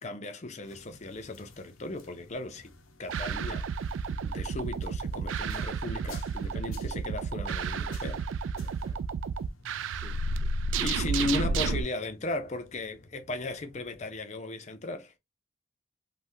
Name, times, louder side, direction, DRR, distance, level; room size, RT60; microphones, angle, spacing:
voice 1, 0.0-2.7 3.0-3.7 4.1-8.3 10.8-15.1, left 2 dB, 35° left, 0.5 m, -36 dB
sound 1, 0.6-14.2, left 3 dB, 85° left, 0.7 m, -55 dB
sound 2, 3.1-11.8, right 4 dB, 70° right, 0.3 m, -31 dB
voice 2, 8.5-9.1 9.9-10.5 11.3-11.9, right 1 dB, 20° right, 0.9 m, -52 dB
3.4 x 2.2 x 2.6 m
head